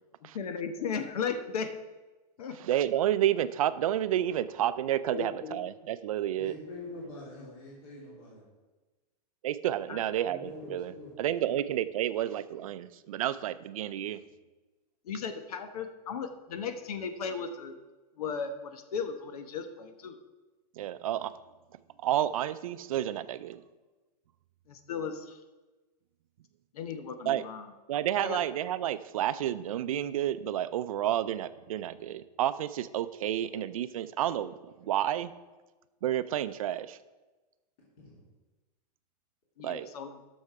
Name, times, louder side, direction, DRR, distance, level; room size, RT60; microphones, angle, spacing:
voice 1, 0.3-1.7 2.4-2.6 5.1-5.6 7.4-7.5 9.9-10.0 15.0-17.8 18.2-20.2 24.7-25.4 26.7-27.7 28.2-28.4 39.6-40.2, left 6 dB, 65° left, 8 dB, 1.1 m, -36 dB
voice 2, 2.5-6.6 9.4-14.2 20.8-21.4 22.0-23.6 27.2-27.4 27.9-35.3 36.0-37.0 39.6-39.9, right 12 dB, 55° right, 14 dB, 0.5 m, -30 dB
voice 3, 6.3-8.5 10.2-11.1 38.0-38.2, left 2 dB, 30° left, -6 dB, 2.7 m, -45 dB
12.0 x 6.3 x 4.8 m, 1.2 s
supercardioid pair, 175°, 21 cm